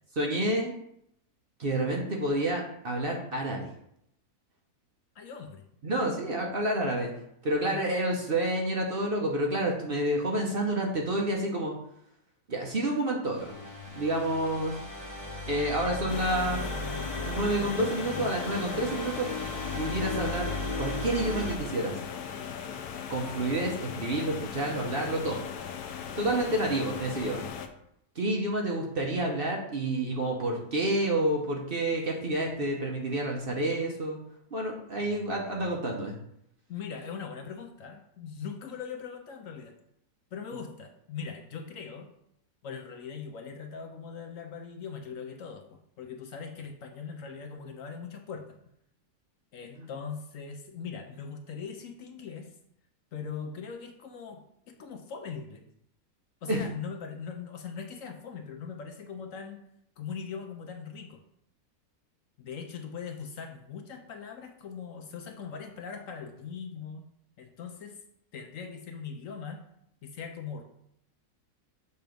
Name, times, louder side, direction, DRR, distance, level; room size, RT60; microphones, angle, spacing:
voice 1, 0.2-0.7 1.6-3.7 5.8-7.1 7.4-11.7 12.5-13.5 14.0-14.8 15.4-16.6 17.3-19.3 19.7-20.5 20.8-22.0 23.1-25.5 26.2-27.4 28.1-34.2 34.5-36.1 49.8-49.9 56.5-56.7, right 1 dB, 45° right, 0 dB, 0.9 m, -29 dB
voice 2, 5.2-5.6 7.6-7.9 26.3-26.5 35.0-35.4 35.7-35.8 36.7-39.8 40.3-42.1 42.6-48.5 49.5-52.5 53.1-54.4 54.8-55.6 56.4-59.6 60.0-61.2 62.4-67.0 67.4-68.0 68.3-69.6 70.0-70.6, left 6 dB, 65° left, 5 dB, 1.0 m, -40 dB
sound 1, 13.3-21.5, left 2 dB, 15° left, 0.7 m, -36 dB
sound 2, 16.1-27.7, left 7 dB, 80° left, 1.2 m, -39 dB
6.8 x 3.1 x 5.2 m, 0.73 s
omnidirectional pair, 1.6 m